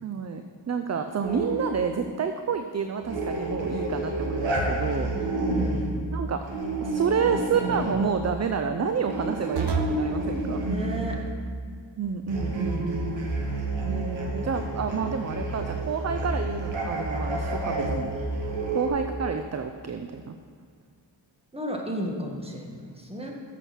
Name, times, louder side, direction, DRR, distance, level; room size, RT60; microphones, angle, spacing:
voice 1, 0.0-5.1 6.1-6.4 6.8-10.6 12.0-12.9 13.8-18.1 18.7-20.3, right 6 dB, 35° right, 7 dB, 0.5 m, -29 dB
sound 1, 1.2-1.9 3.0-5.9 6.4-8.0 8.9-11.3 12.3-18.9, right 2 dB, 80° right, 1.6 m, -30 dB
sound 2, 4.6-5.0 7.6-8.0 9.6-10.1 12.6-13.3, right 4 dB, 65° right, 0.9 m, -31 dB
voice 2, 5.1-5.9 10.7-11.2 13.4-13.8 21.5-23.3, equal, 15° right, 0 dB, 1.6 m, -34 dB
7.9 x 6.3 x 6.0 m, 2.1 s
cardioid pair, 60°, 45 cm